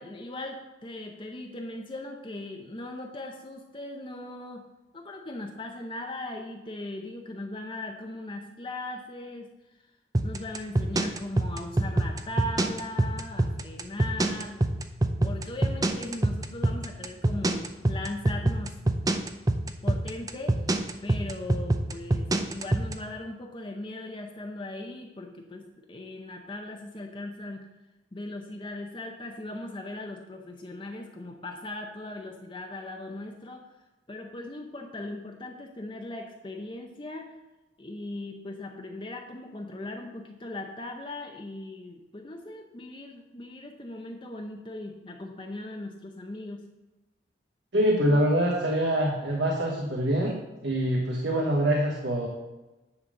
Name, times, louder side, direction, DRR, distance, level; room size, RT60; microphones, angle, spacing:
voice 1, 0.0-4.6 4.9-9.5 10.2-14.6 15.2-18.8 19.8-27.7 28.1-33.6 34.1-37.3 37.8-46.6, left 2 dB, 30° left, 2 dB, 0.7 m, -39 dB
sound 1, 10.1-22.9, right 1 dB, 20° right, 0.5 m, -24 dB
voice 2, 47.7-50.3 50.6-52.3, right 1 dB, 75° right, -1 dB, 1.2 m, -24 dB
9.8 x 4.1 x 6.4 m, 1.1 s
head